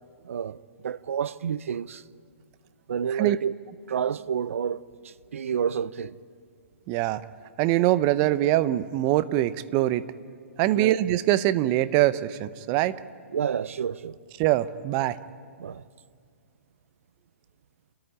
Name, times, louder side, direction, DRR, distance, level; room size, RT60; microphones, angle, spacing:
voice 1, 0.2-2.0 2.9-3.5 3.9-6.2 10.7-11.0 13.3-14.2 15.6-15.8, right 8 dB, 70° right, 0.6 m, -30 dB
voice 2, 6.9-7.2 7.6-10.1 10.6-13.0 14.4-15.2, right 14 dB, 30° right, 0.7 m, -23 dB
29.0 x 14.0 x 10.0 m
hypercardioid pair, 140°, 8 cm